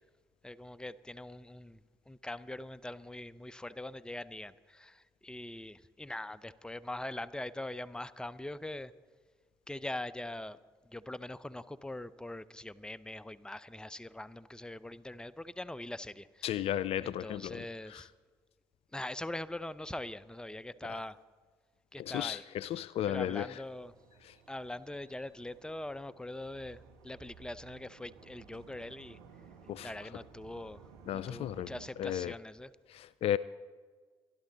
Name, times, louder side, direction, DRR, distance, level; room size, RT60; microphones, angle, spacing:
voice 1, 0.4-8.9 9.7-10.6 10.8-16.7 17.0-18.1 18.9-21.2 21.9-22.4 23.0-23.9 24.5-29.2 29.8-32.7, left 1 dB, 5° left, 17 dB, 0.6 m, -42 dB
voice 2, 16.4-17.7 17.9-18.0 22.0-23.5 29.7-29.9 31.1-31.7 32.0-32.3 32.9-33.4, left 11 dB, 55° left, 18 dB, 0.4 m, -34 dB
sound 1, 23.4-31.9, right 6 dB, 80° right, 1.8 m, -57 dB
25.0 x 11.5 x 3.9 m, 1.5 s
hypercardioid pair, 45°, 12 cm